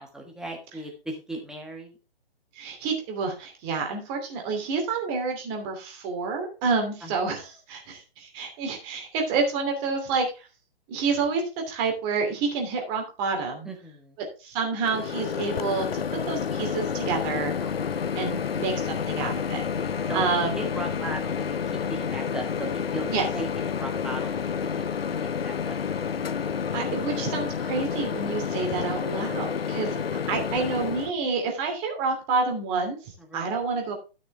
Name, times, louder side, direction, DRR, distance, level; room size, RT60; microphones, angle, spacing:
voice 1, 0.0-2.0 7.0-7.2 13.6-14.2 17.6-18.1 20.1-25.8 33.2-33.9, right 1 dB, ahead, 1 dB, 1.5 m, -38 dB
voice 2, 2.5-10.5 10.9-13.7 14.2-17.6 18.2-19.7 20.1-20.5 23.1-23.2 26.7-30.0 30.3-33.9, right 4 dB, 25° right, 3 dB, 2.7 m, -28 dB
Microwave oven, 14.8-31.1, left 7 dB, 80° left, 0.6 m, -29 dB
12.5 x 6.2 x 3.4 m, 0.31 s
figure-of-eight pair, 135°, 30 cm